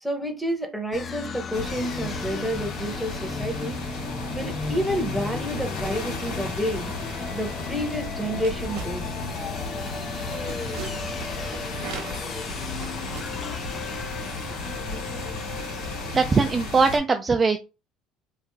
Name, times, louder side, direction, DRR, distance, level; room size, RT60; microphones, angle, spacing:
voice 1, 0.0-3.8 4.3-6.9 7.3-9.0, equal, ahead, 0.9 m, -29 dB
sound 1, 0.9-16.5, left 5 dB, 35° left, 0.5 m, -35 dB
sound 2, 1.5-17.0, left 2 dB, 80° left, 1.6 m, -34 dB
sound 3, 8.4-13.9, right 4 dB, 85° right, 0.7 m, -41 dB
voice 2, 16.1-17.6, right 4 dB, 25° right, 0.4 m, -20 dB
3.1 x 2.4 x 3.5 m
supercardioid pair, 105°, 0 cm